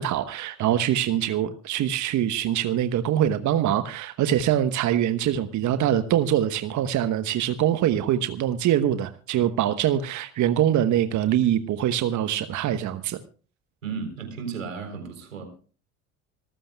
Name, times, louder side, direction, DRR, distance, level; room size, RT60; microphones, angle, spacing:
voice 1, 0.0-13.2, right 11 dB, 50° right, 11 dB, 1.1 m, -24 dB
voice 2, 13.8-15.4, right 5 dB, 90° right, 6 dB, 3.8 m, -34 dB
26.0 x 14.5 x 2.3 m, 0.39 s
hypercardioid pair, 60°, 38 cm